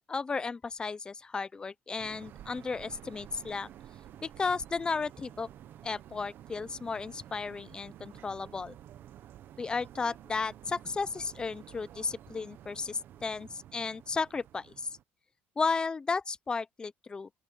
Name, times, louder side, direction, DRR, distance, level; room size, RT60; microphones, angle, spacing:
voice 1, 0.1-3.7 4.2-5.5 5.8-8.8 9.6-14.9 15.6-17.3, left 4 dB, 20° left, 0.6 m, -34 dB
sound 1, 2.0-15.0, right 11 dB, 50° right, 0.9 m, -51 dB
open air
cardioid pair, 150°, 5 cm